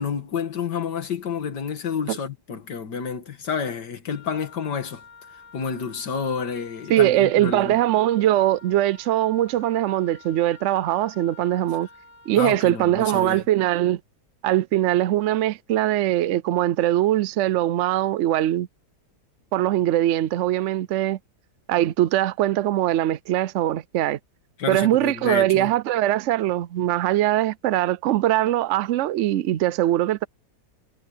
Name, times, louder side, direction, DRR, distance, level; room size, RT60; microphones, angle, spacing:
voice 1, 0.0-5.0 5.5-7.8 12.4-13.4 24.6-25.7, left 6 dB, 85° left, 2.3 m, -29 dB
Wind instrument woodwind instrument, 4.1-12.9, left 5 dB, 45° right, 6.2 m, -49 dB
voice 2, 6.9-11.9 12.3-14.0 14.4-18.7 19.5-21.2 21.7-24.2 24.7-30.2, right 13 dB, 75° right, 0.7 m, -21 dB
omnidirectional pair, 1.8 m